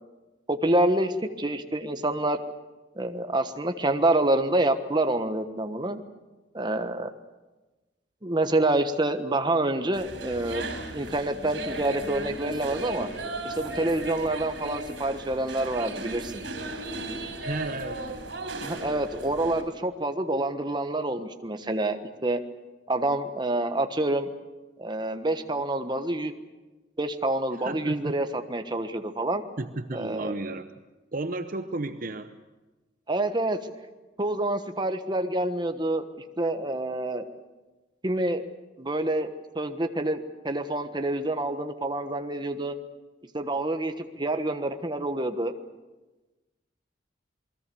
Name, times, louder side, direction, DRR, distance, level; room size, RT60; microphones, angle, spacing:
voice 1, 0.5-2.4 3.0-6.0 6.5-7.1 8.2-10.7 10.9-13.1 13.4-16.3 18.6-22.4 22.9-24.3 24.8-26.3 27.0-29.4 29.9-30.4 33.1-33.6 34.2-36.0 36.4-37.2 38.0-38.4 38.8-42.7 43.3-45.5, right 1 dB, 25° right, 7 dB, 1.3 m, -27 dB
sound 1, 9.9-19.6, right 1 dB, 85° right, 4.4 m, -36 dB
voice 2, 17.3-18.1 27.6-28.1 29.6-30.7 31.1-32.4, right 2 dB, 45° right, 9 dB, 0.9 m, -33 dB
28.0 x 20.5 x 7.0 m, 1.2 s
head